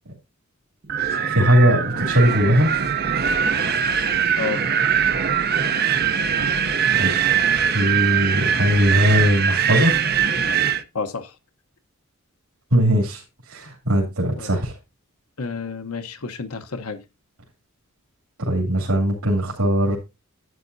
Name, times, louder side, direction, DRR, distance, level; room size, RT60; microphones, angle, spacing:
Wind, 0.9-10.8, right 7 dB, 45° right, 0.7 m, -21 dB
voice 1, 1.2-2.7 6.9-7.1 7.6-10.0 12.7-14.8 18.4-20.0, equal, 80° right, 2.8 m, -19 dB
voice 2, 10.9-11.3 14.4-14.5 15.4-17.0, left 4 dB, 80° left, 1.0 m, -30 dB
11.0 x 8.8 x 2.7 m
head